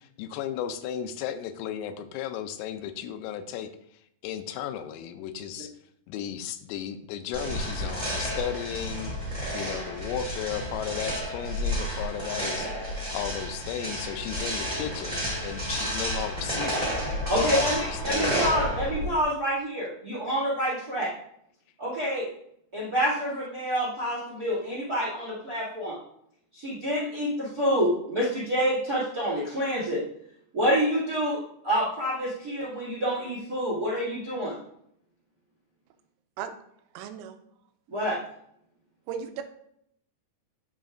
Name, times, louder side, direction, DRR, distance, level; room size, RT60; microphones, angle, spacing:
voice 1, 0.0-3.7 4.2-5.7 6.1-12.7 13.1-16.9 17.3-18.5, left 9 dB, 85° left, 3.3 m, -35 dB
sound 1, 7.3-19.2, equal, 15° right, 1.3 m, -31 dB
voice 2, 17.3-21.1 21.8-22.3 22.7-26.0 26.5-30.0 30.5-31.4 31.6-34.6 37.9-38.2, equal, 60° right, 0.9 m, -27 dB
voice 3, 36.9-37.4 39.1-39.4, right 8 dB, 80° right, 2.9 m, -35 dB
12.5 x 4.8 x 2.5 m
omnidirectional pair, 6.0 m